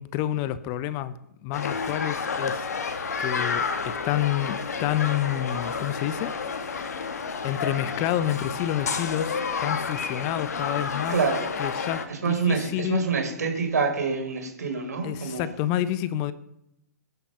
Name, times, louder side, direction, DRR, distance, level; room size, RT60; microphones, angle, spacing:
voice 1, 0.0-6.3 6.6-6.9 7.4-11.2 11.6-13.0 15.0-16.3, left 12 dB, 35° left, 14 dB, 1.1 m, -29 dB
sound 1, 1.5-12.1, left 5 dB, 70° left, 2.4 m, -30 dB
voice 2, 11.1-11.5 12.1-15.5, right 5 dB, 70° right, 4 dB, 4.8 m, -26 dB
23.0 x 11.0 x 5.8 m, 0.78 s
figure-of-eight pair, 115°, 9 cm